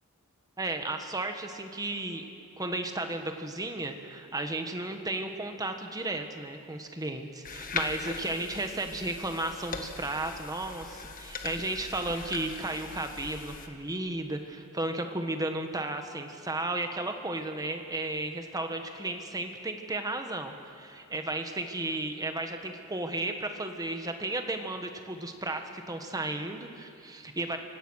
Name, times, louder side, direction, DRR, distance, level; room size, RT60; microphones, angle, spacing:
voice 1, 0.6-27.6, right 2 dB, 15° right, 5 dB, 1.4 m, -34 dB
sound 1, 7.4-13.7, left 4 dB, 40° left, 1.4 m, -40 dB
25.5 x 17.5 x 6.4 m, 2.6 s
head